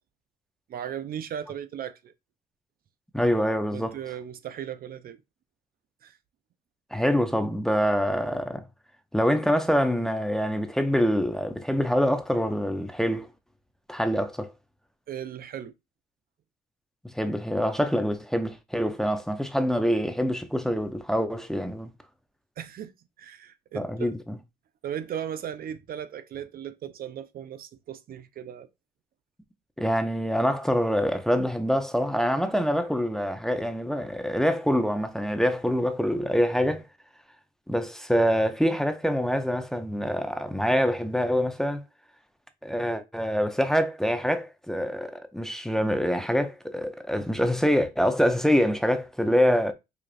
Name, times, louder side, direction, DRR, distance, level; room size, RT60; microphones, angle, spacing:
voice 1, 0.7-2.1 3.7-5.2 6.0-6.2 15.1-15.7 22.6-22.9 23.2-24.1 24.8-28.7, right 9 dB, 55° right, 0.5 m, -37 dB
voice 2, 3.1-3.9 6.9-8.7 9.1-13.3 13.9-14.5 17.0-21.9 23.7-24.4 29.8-36.9 37.7-41.8 42.6-49.7, equal, 5° left, 0.6 m, -25 dB
4.9 x 2.4 x 2.5 m
cardioid pair, 80°, 18 cm